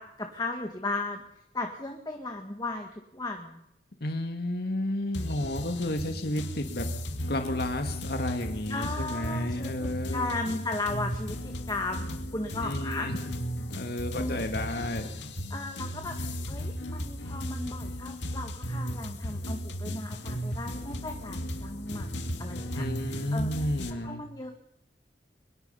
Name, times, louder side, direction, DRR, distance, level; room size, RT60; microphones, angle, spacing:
voice 1, 0.0-3.6 8.7-13.1 14.1-14.5 15.5-16.2 16.5-23.5 24.0-24.5, left 2 dB, 25° left, 3 dB, 1.9 m, -36 dB
voice 2, 4.0-6.9 7.3-10.4 12.6-13.3 13.7-15.1 16.0-16.5 22.7-24.2, left 1 dB, 60° left, 5 dB, 2.1 m, -32 dB
sound 1, 5.1-23.9, equal, 90° left, 2.4 m, -35 dB
24.0 x 21.5 x 5.7 m, 0.77 s
head